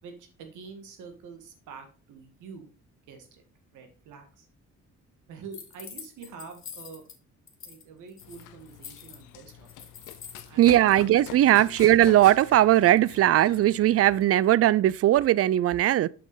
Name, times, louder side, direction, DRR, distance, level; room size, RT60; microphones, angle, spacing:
voice 1, 0.0-2.7 3.1-3.4 3.7-4.5 5.3-7.0 7.6-9.9 10.4-10.9 11.5-11.8, right 5 dB, 90° right, 1.6 m, -46 dB
sound 1, 5.5-7.2 7.5-7.8 8.1-10.5, left 6 dB, 45° left, 1.4 m, -45 dB
Run, 8.2-14.2, left 13 dB, 85° left, 0.5 m, -45 dB
voice 2, 10.6-16.1, right 13 dB, 50° right, 0.4 m, -19 dB
6.0 x 5.9 x 4.0 m
cardioid pair, 90°, 30 cm